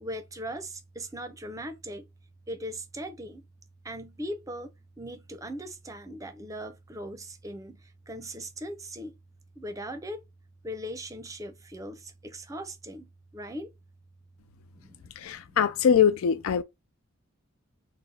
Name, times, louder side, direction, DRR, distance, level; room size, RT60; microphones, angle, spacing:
voice 1, 0.0-2.0 2.5-3.4 3.8-4.7 5.0-7.8 8.1-9.1 9.6-10.2 10.6-13.7 14.8-15.0, equal, 15° right, 0.5 m, -39 dB
voice 2, 15.2-16.6, left 8 dB, 85° left, 0.4 m, -23 dB
3.9 x 2.0 x 4.1 m
head